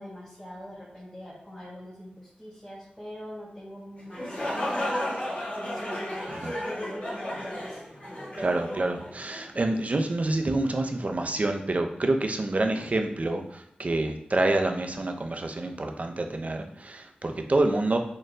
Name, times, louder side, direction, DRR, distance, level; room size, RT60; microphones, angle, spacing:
voice 1, 0.0-5.0 5.5-7.8, equal, 15° left, -6 dB, 1.0 m, -43 dB
sound 1, 4.0-9.7, left 1 dB, 40° left, 1.2 m, -33 dB
voice 2, 8.4-18.0, right 2 dB, 45° right, 4 dB, 0.5 m, -27 dB
4.2 x 3.0 x 2.5 m, 0.71 s
cardioid pair, 45°, 3 cm